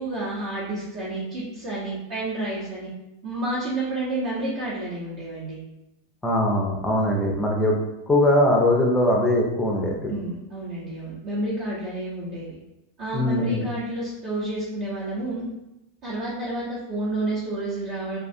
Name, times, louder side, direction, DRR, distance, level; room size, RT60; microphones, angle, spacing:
voice 1, 0.0-2.9 3.2-5.6 10.1-12.5 13.0-15.5 16.0-18.2, right 2 dB, 45° right, -8 dB, 0.7 m, -30 dB
voice 2, 6.2-7.7 8.1-10.1 13.1-13.7, left 1 dB, 10° left, -1 dB, 0.5 m, -21 dB
2.3 x 2.2 x 2.6 m, 0.91 s
figure-of-eight pair, 90°, 0 cm